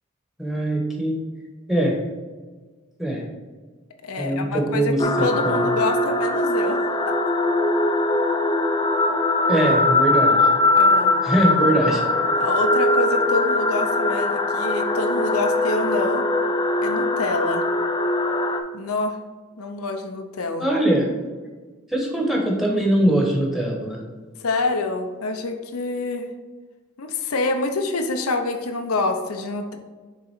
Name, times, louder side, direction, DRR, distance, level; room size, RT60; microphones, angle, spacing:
voice 1, 0.4-1.1 1.7-1.9 3.0-3.2 4.2-5.7 9.5-10.5 11.2-12.0 20.6-21.1 21.9-24.0, right 1 dB, ahead, -1 dB, 1.1 m, -22 dB
voice 2, 4.0-6.8 7.1-7.2 10.7-11.2 12.4-16.3 16.8-17.7 18.7-19.2 19.6-20.7 24.4-26.3 27.0-29.8, left 3 dB, 85° left, 5 dB, 0.7 m, -26 dB
sound 1, 5.0-18.6, left 2 dB, 20° left, 0.4 m, -21 dB
6.6 x 3.8 x 4.4 m, 1.4 s
head